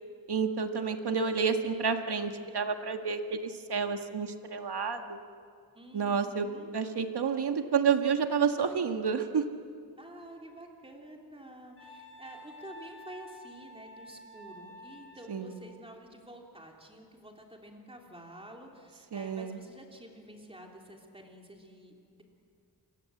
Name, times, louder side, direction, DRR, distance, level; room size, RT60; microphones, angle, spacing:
voice 1, 0.3-5.2 5.9-6.5 6.7-9.4 15.3-15.6 19.1-19.6, right 6 dB, 75° right, 6 dB, 1.8 m, -30 dB
voice 2, 5.7-6.7 10.0-22.2, right 1 dB, 15° right, 1 dB, 3.4 m, -50 dB
Wind instrument woodwind instrument, 11.8-15.4, equal, 30° left, 6.0 m, -50 dB
28.5 x 23.0 x 7.8 m, 2.3 s
wide cardioid pair, 145°, 40 cm